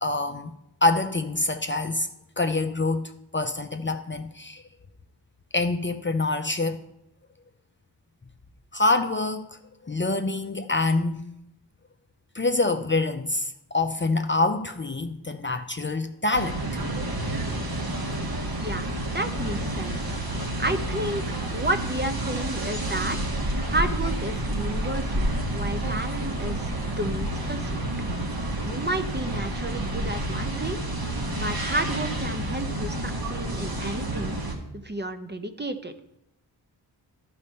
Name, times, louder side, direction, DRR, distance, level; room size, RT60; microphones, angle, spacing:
voice 1, 0.0-0.5 0.8-2.1 2.4-4.6 5.5-6.8 8.7-9.6 9.8-11.2 12.3-16.7, left 2 dB, 25° left, 0.5 m, -26 dB
sound 1, 16.3-34.5, right 1 dB, 55° right, 1.7 m, -29 dB
voice 2, 18.6-20.0 20.6-21.2 21.5-23.2 23.6-27.7 28.6-30.8 31.4-34.4 34.7-35.9, right 1 dB, 25° right, 0.7 m, -31 dB
12.0 x 4.3 x 5.4 m
cardioid pair, 50°, 43 cm